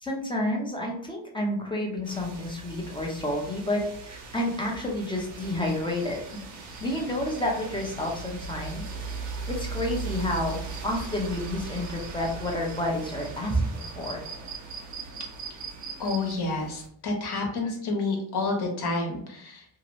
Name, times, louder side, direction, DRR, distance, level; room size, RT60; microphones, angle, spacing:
voice 1, 0.0-6.2 6.8-8.8 9.2-14.2, left 1 dB, 10° left, -1 dB, 0.6 m, -30 dB
sound 1, 2.0-16.9, right 4 dB, 85° right, 1.0 m, -39 dB
sound 2, 5.3-16.3, right 5 dB, 40° right, 0.5 m, -45 dB
voice 2, 16.0-19.7, left 3 dB, 55° left, 1 dB, 1.0 m, -29 dB
2.8 x 2.6 x 3.0 m, 0.68 s
cardioid pair, 145°, 48 cm